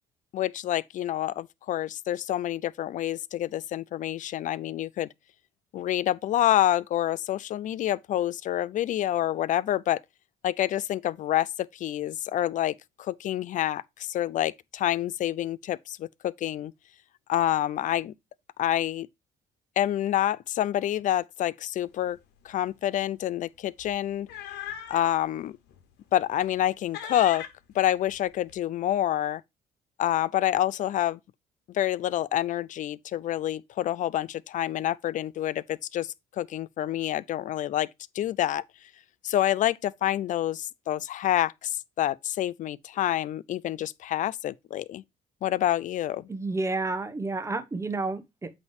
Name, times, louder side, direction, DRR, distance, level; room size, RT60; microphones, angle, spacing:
voice 1, 0.3-5.1 5.7-10.0 10.4-16.7 17.3-18.1 18.6-19.1 19.8-22.2 22.4-24.3 24.9-25.6 26.1-27.4 27.7-29.4 30.0-31.2 31.7-37.9 38.1-38.6 39.2-45.0 45.4-46.3, left 12 dB, 50° left, 0.4 m, -27 dB
sound 1, 22.0-22.2 22.5-22.7 23.8-25.2 25.7-25.8 26.3-26.7 26.9-28.5, left 8 dB, 80° left, 1.1 m, -40 dB
voice 2, 46.3-48.5, right 3 dB, 15° right, 0.9 m, -30 dB
8.1 x 3.2 x 4.8 m
cardioid pair, 110°, 17 cm